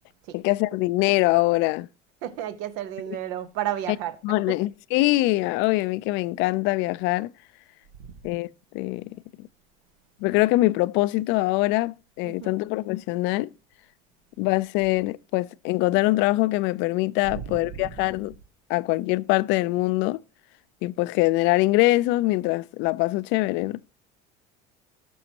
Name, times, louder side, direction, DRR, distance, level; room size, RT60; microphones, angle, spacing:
voice 1, 0.3-1.9 4.2-7.3 8.2-8.5 8.7-9.1 10.2-13.5 14.4-18.3 18.7-20.2 20.8-23.8, left 19 dB, 65° left, 0.5 m, -23 dB
voice 2, 2.2-4.6 8.0-8.1 12.2-12.6 17.3-18.1, right 11 dB, 75° right, 1.2 m, -33 dB
18.0 x 6.4 x 2.9 m
supercardioid pair, 120°, 20 cm